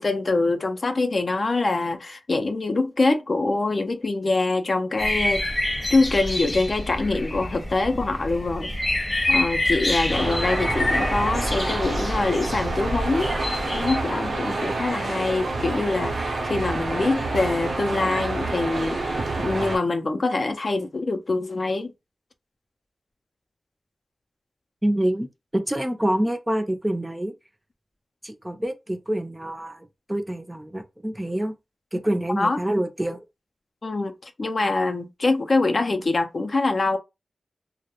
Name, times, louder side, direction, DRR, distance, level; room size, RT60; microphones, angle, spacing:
voice 1, 0.0-5.4 5.9-8.7 9.3-13.3 13.7-16.2 16.4-21.9 32.4-32.6 33.8-37.0, left 3 dB, 50° left, 0.3 m, -24 dB
sound 1, 5.0-13.9, left 1 dB, 35° left, 0.8 m, -27 dB
sound 2, 10.1-19.8, right 2 dB, 85° right, 0.7 m, -28 dB
voice 2, 24.8-25.3 25.5-27.3 28.2-31.5 31.9-33.2, right 1 dB, 10° right, 0.4 m, -26 dB
2.2 x 2.0 x 2.9 m
wide cardioid pair, 70°, 0 cm